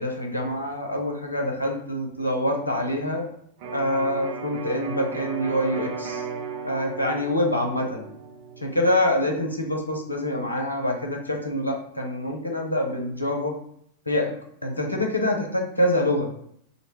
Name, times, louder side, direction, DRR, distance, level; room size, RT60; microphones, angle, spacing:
voice 1, 0.0-3.3 3.7-6.2 6.6-8.1 8.6-13.5 14.1-14.3 14.6-16.3, left 1 dB, 85° left, 1 dB, 0.4 m, -25 dB
Electric guitar, 3.6-11.4, right 5 dB, 50° right, 0.5 m, -37 dB
2.5 x 2.1 x 2.9 m, 0.68 s
figure-of-eight pair, 90°, 0 cm